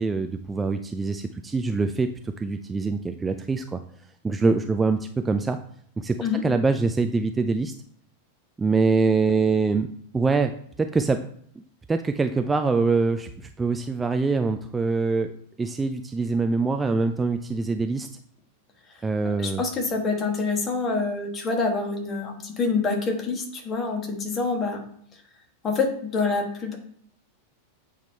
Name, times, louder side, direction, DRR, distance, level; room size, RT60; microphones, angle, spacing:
voice 1, 0.0-3.8 4.2-5.6 6.0-6.2 6.4-7.7 8.6-9.9 10.1-11.2 11.6-11.7 11.9-15.3 15.6-18.1 19.0-19.6, right 4 dB, 15° right, 7 dB, 0.4 m, -24 dB
voice 2, 19.2-24.8 25.6-26.8, left 4 dB, 25° left, 3 dB, 1.4 m, -26 dB
8.1 x 3.6 x 4.2 m, 0.63 s
figure-of-eight pair, 90°, 0 cm